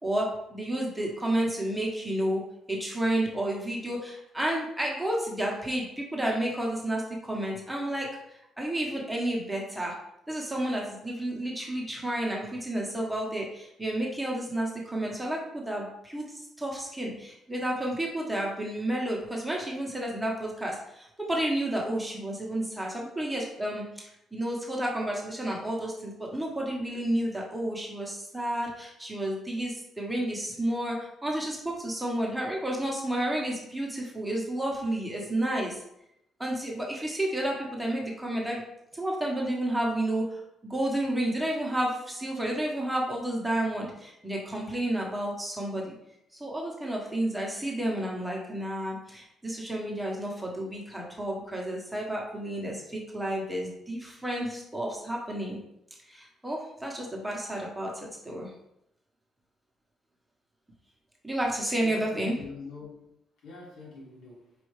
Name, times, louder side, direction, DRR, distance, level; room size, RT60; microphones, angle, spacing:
voice 1, 0.0-10.0 10.3-35.8 36.4-38.6 38.9-45.9 46.4-55.6 56.1-58.5 61.2-62.4, right 1 dB, 5° right, 1.1 m, -31 dB
voice 2, 61.8-63.1 63.4-64.5, left 3 dB, 80° left, 1.5 m, -44 dB
5.4 x 2.7 x 3.2 m
cardioid pair, 90°, 0 cm